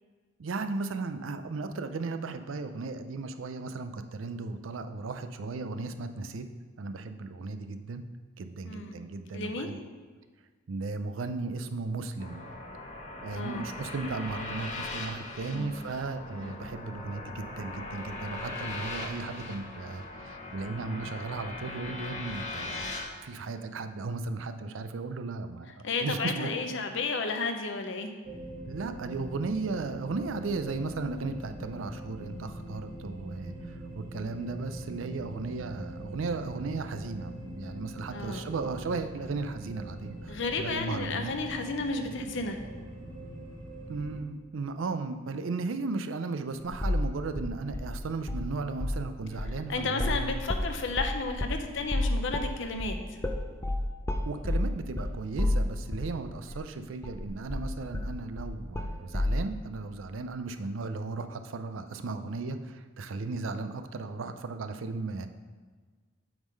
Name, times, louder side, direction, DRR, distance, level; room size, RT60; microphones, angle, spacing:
voice 1, 0.4-6.5 6.8-8.0 8.4-9.8 10.7-12.4 13.2-22.9 23.2-25.7 26.0-26.5 28.7-41.3 43.9-50.3 54.2-65.3, right 3 dB, 75° right, 9 dB, 0.5 m, -35 dB
voice 2, 8.6-9.0 9.3-9.7 13.3-13.7 15.5-15.7 16.4-16.6 25.8-28.1 38.1-38.5 40.3-42.6 49.7-53.0, left 3 dB, 70° left, 5 dB, 0.7 m, -32 dB
sound 1, 12.2-23.0, left 2 dB, 40° left, 0.9 m, -40 dB
sound 2, 28.2-44.2, right 1 dB, 45° right, 1.0 m, -42 dB
sound 3, 46.7-47.1 47.4-48.5 48.7-49.1 49.4-56.2 56.5-56.6 57.0-59.4, left 1 dB, 15° left, 0.4 m, -30 dB
7.8 x 3.7 x 5.3 m, 1.4 s
head